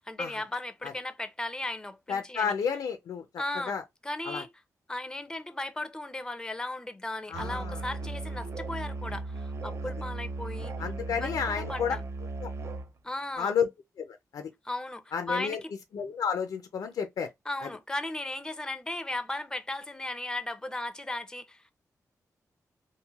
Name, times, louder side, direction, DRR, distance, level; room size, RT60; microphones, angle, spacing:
voice 1, 0.0-2.5 3.4-3.7 4.0-4.5 4.9-10.7 11.1-12.0 13.0-13.5 14.6-15.7 17.5-21.7, left 2 dB, 10° left, 0.5 m, -36 dB
voice 2, 2.1-3.3 3.7-3.8 4.2-4.4 7.3-7.8 10.8-12.0 12.4-12.5 13.4-13.7 14.0-14.5 15.1-15.6 15.9-17.3 17.6-17.7, left 7 dB, 80° left, 0.4 m, -31 dB
Musical instrument, 7.3-12.9, right 2 dB, 45° right, 0.3 m, -36 dB
3.0 x 2.5 x 2.3 m
cardioid pair, 75°, 6 cm